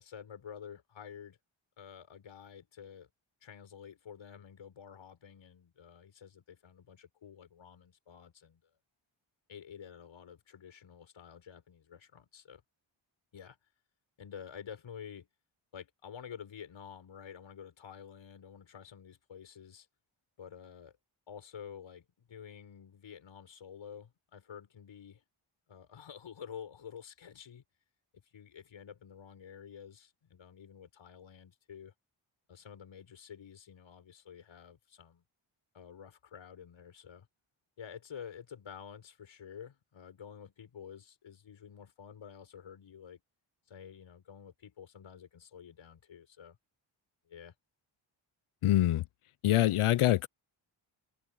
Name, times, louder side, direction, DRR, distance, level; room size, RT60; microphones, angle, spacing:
voice 1, 0.0-1.4 1.8-3.1 3.4-8.6 9.5-12.6 13.3-13.6 14.2-15.3 15.7-19.9 20.4-21.0 21.3-25.2 25.7-27.6 28.2-31.9 32.5-35.2 35.7-37.3 37.8-43.2 43.7-46.6 47.3-47.5, left 8 dB, 65° left, 7.4 m, -50 dB
voice 2, 48.6-49.0 49.4-50.3, left 14 dB, 85° left, 0.7 m, -25 dB
wide cardioid pair, 175°, 49 cm